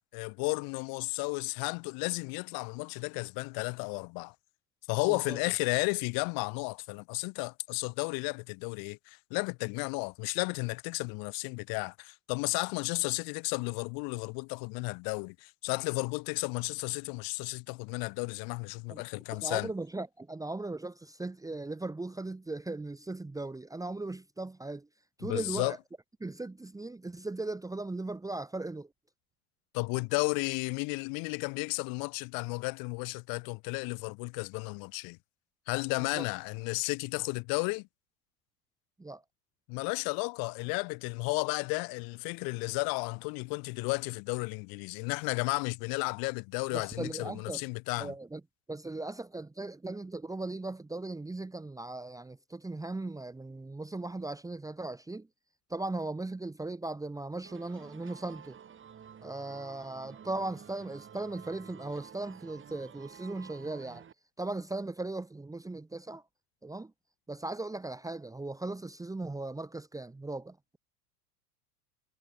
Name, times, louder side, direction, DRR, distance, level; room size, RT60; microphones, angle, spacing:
voice 1, 0.1-4.3 4.9-19.7 25.2-25.7 29.7-35.2 35.7-37.9 39.7-48.1, left 33 dB, 50° left, 1.6 m, -33 dB
voice 2, 5.1-5.4 18.9-19.0 19.4-24.9 25.2-25.8 26.2-28.9 36.2-36.3 39.0-39.2 46.7-47.6 48.0-48.4 48.7-55.3 55.7-58.6 59.2-64.0 64.4-66.2 66.6-66.9 67.3-70.8, right 2 dB, 5° right, 1.5 m, -38 dB
sound 1, 57.4-64.1, right 8 dB, 25° right, 5.0 m, -51 dB
hypercardioid pair, 85°, 45 cm